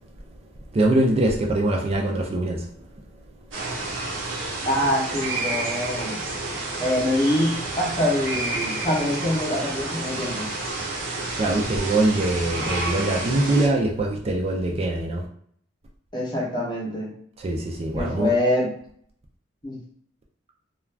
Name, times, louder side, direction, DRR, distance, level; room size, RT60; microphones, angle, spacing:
voice 1, 0.7-2.7 11.4-15.3 17.4-18.3, right 2 dB, 30° right, -1 dB, 0.4 m, -23 dB
sound 1, 3.5-13.7, right 2 dB, 85° right, 0.9 m, -30 dB
voice 2, 4.6-6.2 6.8-10.6 16.1-17.1 17.9-18.7 19.6-19.8, left 1 dB, 25° left, -3 dB, 0.7 m, -25 dB
2.3 x 2.3 x 3.2 m, 0.63 s
head